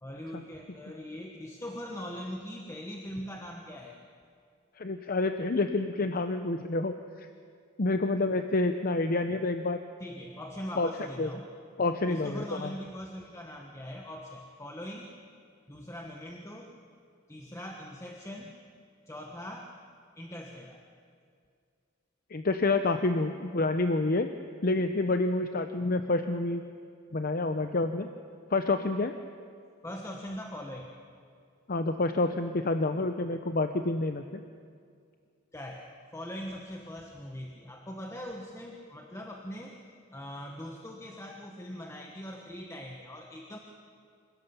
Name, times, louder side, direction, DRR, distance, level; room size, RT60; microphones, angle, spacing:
voice 1, 0.0-4.0 10.0-11.5 12.0-15.1 15.7-16.8 17.3-18.5 19.1-19.7 20.2-20.8 29.8-30.9 35.5-39.8 40.1-43.6, equal, 15° left, 1 dB, 1.3 m, -41 dB
voice 2, 4.8-7.3 7.8-9.8 10.8-10.9 11.2-11.3 11.8-12.7 22.3-24.3 24.6-26.6 27.1-28.1 28.5-29.1 31.7-34.4, left 2 dB, 45° left, 8 dB, 0.8 m, -28 dB
27.0 x 16.5 x 7.0 m, 2.2 s
head